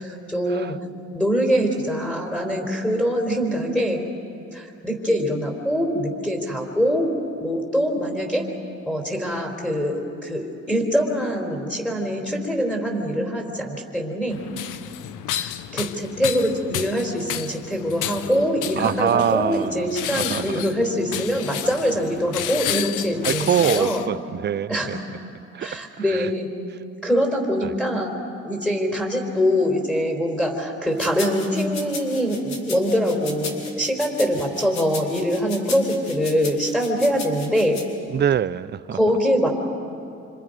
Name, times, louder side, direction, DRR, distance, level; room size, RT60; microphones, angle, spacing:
voice 1, 0.3-0.8 1.1-4.0 4.5-7.1 7.4-8.5 8.9-14.4 15.3-24.1 24.7-24.9 25.6-26.5 27.0-28.1 28.4-37.8 38.9-39.5, equal, 5° left, 0 dB, 3.9 m, -23 dB
sound 1, 14.3-24.1, left 11 dB, 85° left, 0.8 m, -31 dB
voice 2, 18.8-19.9 20.1-20.4 23.2-25.0 25.5-25.7 26.1-26.3 27.6-27.7 38.1-39.0, right 9 dB, 35° right, 18 dB, 0.5 m, -24 dB
sound 2, 31.0-37.9, left 4 dB, 65° left, 3.4 m, -36 dB
27.0 x 26.0 x 5.3 m, 2.7 s
cardioid pair, 90°, 30 cm